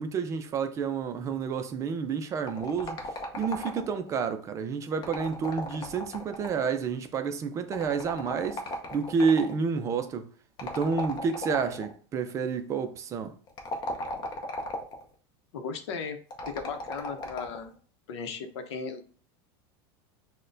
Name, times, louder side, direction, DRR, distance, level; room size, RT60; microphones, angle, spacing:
voice 1, 0.0-3.0 3.3-8.6 8.9-10.3 10.6-13.3, right 5 dB, 20° right, 0.3 m, -29 dB
sound 1, 2.5-4.1 4.9-6.8 7.7-9.6 10.6-11.9 13.5-15.0 16.3-17.6, left 1 dB, 35° left, 0.7 m, -36 dB
voice 2, 15.5-16.2 16.5-17.7 18.1-19.1, left 5 dB, 90° left, 0.7 m, -36 dB
6.2 x 2.1 x 2.6 m
supercardioid pair, 155°, 14 cm